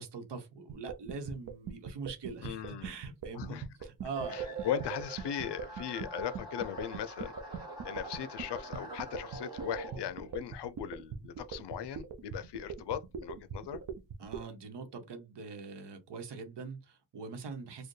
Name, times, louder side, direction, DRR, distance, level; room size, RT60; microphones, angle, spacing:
voice 1, 0.0-4.7 14.2-17.9, right 5 dB, 75° right, 1.0 m, -43 dB
sound 1, 0.7-14.4, right 6 dB, 50° right, 0.6 m, -41 dB
voice 2, 2.4-2.9 3.3-3.6 4.3-13.8, left 9 dB, 70° left, 0.5 m, -38 dB
sound 2, 4.1-10.3, right 3 dB, 10° right, 1.3 m, -44 dB
4.3 x 2.2 x 3.1 m
wide cardioid pair, 175°, 43 cm